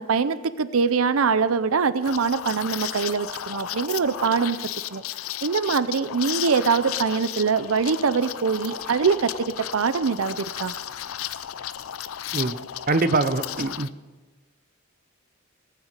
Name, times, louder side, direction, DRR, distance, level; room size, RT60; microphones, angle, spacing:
voice 1, 0.0-4.6 4.9-5.0 5.4-9.3 9.7-10.7, right 5 dB, 85° right, 14 dB, 0.6 m, -23 dB
Liquid, 2.0-13.9, left 11 dB, 90° left, 0.5 m, -34 dB
sound 1, 3.4-9.9, equal, 10° left, 3.7 m, -48 dB
voice 2, 12.9-13.9, right 3 dB, 45° right, 11 dB, 0.7 m, -23 dB
19.0 x 9.2 x 6.7 m, 1.2 s
head